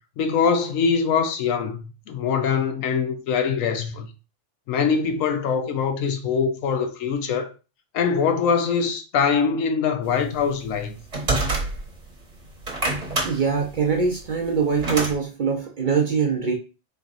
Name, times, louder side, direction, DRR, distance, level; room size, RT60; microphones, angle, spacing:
voice 1, 0.2-4.1 4.7-7.5 7.9-11.0, left 6 dB, 90° left, 1.1 m, -23 dB
sound 1, 10.4-12.1 12.5-15.2, right 2 dB, 35° right, 1.0 m, -26 dB
voice 2, 13.2-16.5, right 5 dB, 50° right, 0.6 m, -23 dB
4.1 x 3.4 x 2.4 m
omnidirectional pair, 1.3 m